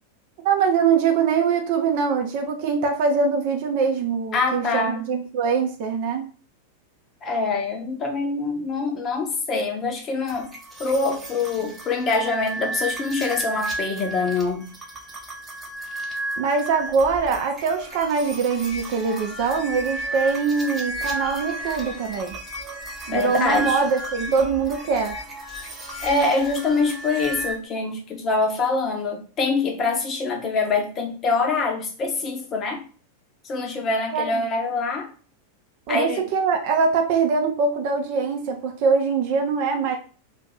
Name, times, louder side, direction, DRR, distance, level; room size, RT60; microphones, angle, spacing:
voice 1, 0.4-6.3 16.4-22.4 23.1-25.2 34.1-34.5 35.9-40.0, right 5 dB, 45° right, 4 dB, 0.6 m, -23 dB
voice 2, 4.3-5.1 7.2-10.5 10.8-14.7 23.1-23.8 26.0-32.8 33.4-35.1 35.9-36.2, left 3 dB, 30° left, 2 dB, 0.8 m, -24 dB
sound 1, 10.3-27.6, right 1 dB, 15° right, 0.9 m, -33 dB
2.6 x 2.5 x 4.0 m, 0.40 s
figure-of-eight pair, 90°, 0 cm